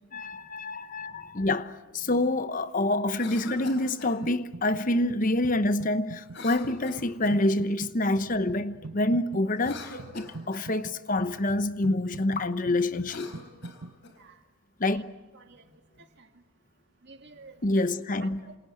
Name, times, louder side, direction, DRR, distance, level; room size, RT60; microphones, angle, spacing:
voice 1, 0.1-13.3 14.8-15.1 17.6-18.4, left 1 dB, 40° left, 1.0 m, -27 dB
Cough, 3.1-4.2 6.3-7.5 9.4-10.7 12.9-14.2, left 3 dB, 55° left, 4.2 m, -44 dB
sound 1, 4.2-4.8 5.1-14.0, right 3 dB, 75° right, 1.0 m, -45 dB
voice 2, 15.3-16.3 17.0-17.9 18.2-18.6, right 3 dB, 50° right, 2.2 m, -52 dB
28.0 x 27.0 x 7.9 m
head